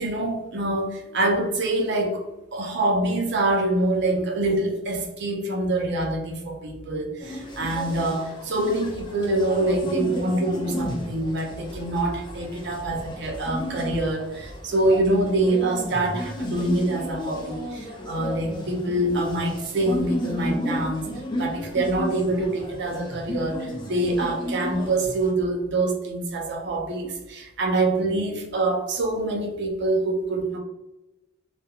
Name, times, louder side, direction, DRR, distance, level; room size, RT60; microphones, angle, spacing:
voice 1, 0.0-2.2 2.5-21.1 21.4-30.6, right 2 dB, 60° right, 2 dB, 0.5 m, -25 dB
sound 1, 7.2-25.3, equal, 20° left, 0.4 m, -33 dB
2.3 x 2.0 x 2.8 m, 0.99 s
head